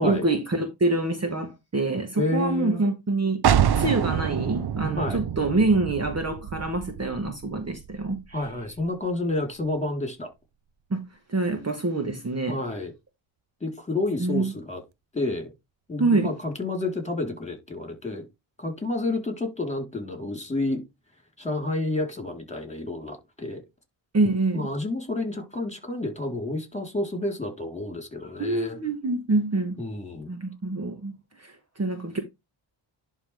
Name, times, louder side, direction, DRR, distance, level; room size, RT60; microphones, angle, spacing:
voice 1, 0.0-3.4 3.8-8.2 10.9-11.0 11.3-12.6 14.2-14.5 16.0-16.3 24.1-24.7 28.4-29.8 30.3-31.1 31.4-32.2, right 2 dB, 30° right, 1.4 m, -26 dB
voice 2, 2.1-2.8 5.0-5.2 8.3-10.3 12.5-12.9 13.6-14.8 15.1-15.5 15.9-18.3 18.6-20.8 21.4-23.6 24.5-28.8 29.8-30.3, left 2 dB, 15° left, 3.9 m, -30 dB
sound 1, 3.4-9.0, right 9 dB, 55° right, 0.7 m, -27 dB
11.0 x 3.7 x 3.5 m
cardioid pair, 85°, 48 cm